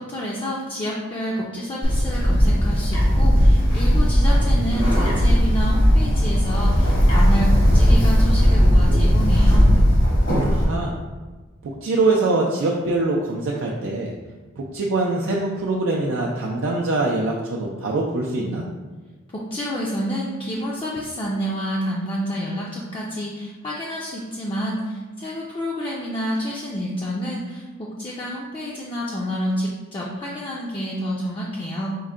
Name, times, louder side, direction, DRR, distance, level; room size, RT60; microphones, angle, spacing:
voice 1, 0.0-9.7 19.3-32.0, equal, 25° left, -5 dB, 0.4 m, -28 dB
Bird, 1.8-10.6, equal, 70° left, 1.2 m, -17 dB
voice 2, 10.5-10.9 11.6-14.1 14.6-18.7, right 2 dB, 85° right, -2 dB, 0.4 m, -23 dB
4.6 x 2.1 x 3.6 m, 1.3 s
head